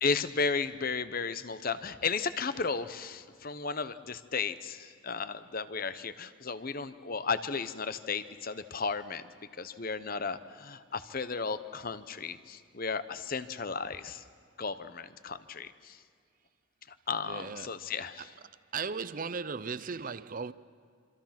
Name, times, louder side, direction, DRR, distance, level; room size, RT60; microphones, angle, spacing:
voice 1, 0.0-14.2 14.6-16.0 16.9-18.3, left 5 dB, 45° left, 0.9 m, -34 dB
voice 2, 17.3-17.7 18.7-20.5, right 5 dB, 40° right, 0.6 m, -36 dB
26.5 x 26.0 x 6.0 m
head